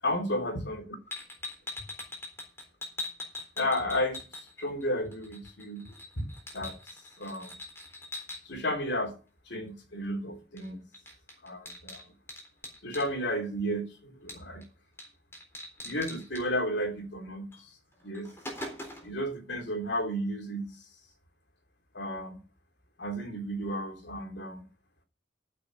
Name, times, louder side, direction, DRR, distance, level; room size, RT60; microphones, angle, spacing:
voice 1, 0.0-1.0 3.6-6.3 6.5-6.8 7.2-7.5 8.4-9.2 9.5-10.8 11.4-12.0 12.8-14.6 15.8-17.8 18.0-18.3 19.0-20.9 21.9-22.4 23.0-24.6, equal, 70° left, 3.0 m, -33 dB
sound 1, 1.1-4.8 5.1-8.4 10.6-10.7 10.9-13.1 14.3-14.7 15.0-15.1 15.3-16.4 17.5-17.6 18.0-19.2, left 2 dB, 15° left, 3.8 m, -42 dB
14.5 x 6.7 x 5.9 m
head